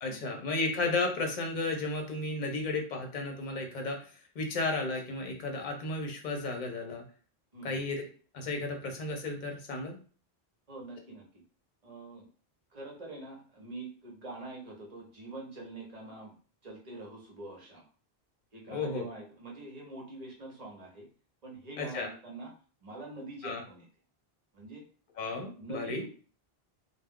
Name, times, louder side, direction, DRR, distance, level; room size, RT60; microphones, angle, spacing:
voice 1, 0.0-7.0 7.6-8.1 8.3-10.0 18.7-19.1 21.8-22.1 23.4-23.6 25.2-26.0, left 3 dB, 55° left, 2 dB, 0.7 m, -33 dB
voice 2, 7.5-7.9 10.7-11.4 11.8-12.3 12.7-16.4 16.6-17.8 18.5-21.1 21.4-22.5 22.8-23.9 24.5-24.8 25.6-26.1, right 2 dB, 40° right, -1 dB, 0.8 m, -45 dB
2.2 x 2.1 x 3.5 m, 0.41 s
omnidirectional pair, 1.1 m